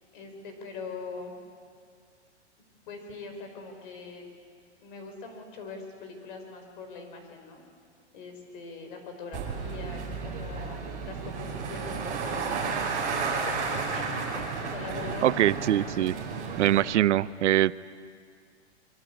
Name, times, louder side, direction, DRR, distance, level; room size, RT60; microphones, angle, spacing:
voice 1, 0.1-1.3 2.9-4.2 4.8-7.6 8.1-10.8 11.1-12.9 13.4-15.9, left 4 dB, 45° left, 4 dB, 5.1 m, -42 dB
sound 1, 9.3-16.8, right 5 dB, 25° right, 4.9 m, -32 dB
voice 2, 15.2-16.2 16.6-17.7, right 13 dB, 80° right, 17 dB, 0.7 m, -23 dB
25.5 x 23.5 x 8.4 m, 2.1 s
hypercardioid pair, 165°, 35 cm